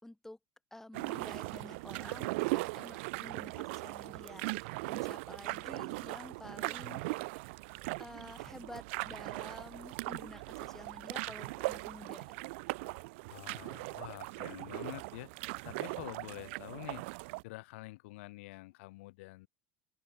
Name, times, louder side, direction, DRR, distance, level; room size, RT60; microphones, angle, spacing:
voice 1, 0.0-0.4 0.7-7.0 8.0-12.4, left 1 dB, 5° left, 5.6 m, -50 dB
sound 1, 0.9-17.4, right 26 dB, 75° right, 2.8 m, -39 dB
voice 2, 13.3-15.3 15.6-17.1 17.4-19.5, left 21 dB, 80° left, 3.8 m, -47 dB
open air
supercardioid pair, 110°, 7 cm